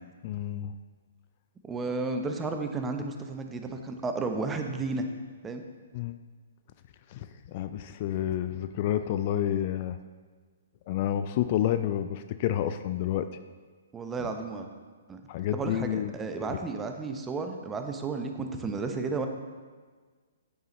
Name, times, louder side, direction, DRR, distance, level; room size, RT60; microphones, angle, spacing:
voice 1, 0.2-0.7 5.9-6.2 7.1-10.0 10.9-13.3 14.2-14.3 15.3-16.1 16.4-16.6, left 11 dB, 40° left, 10 dB, 0.4 m, -29 dB
voice 2, 1.6-5.1 5.4-5.6 13.9-14.7 15.1-15.2 15.5-19.3, right 3 dB, 15° right, 5 dB, 0.8 m, -33 dB
9.6 x 8.8 x 3.1 m, 1.5 s
figure-of-eight pair, 125°, 0 cm